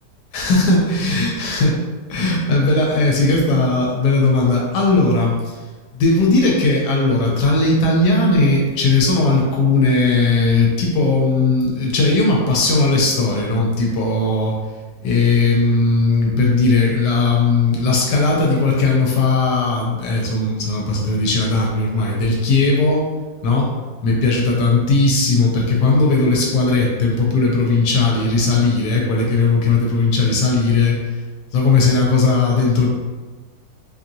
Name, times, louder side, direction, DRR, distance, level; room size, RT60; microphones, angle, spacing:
voice 1, 0.3-1.7 2.1-5.4 5.9-14.6 15.0-23.1 23.4-23.7 24.0-31.1 31.5-32.9, left 3 dB, 85° left, -2 dB, 1.2 m, -17 dB
2.8 x 2.6 x 2.6 m, 1.3 s
omnidirectional pair, 1.8 m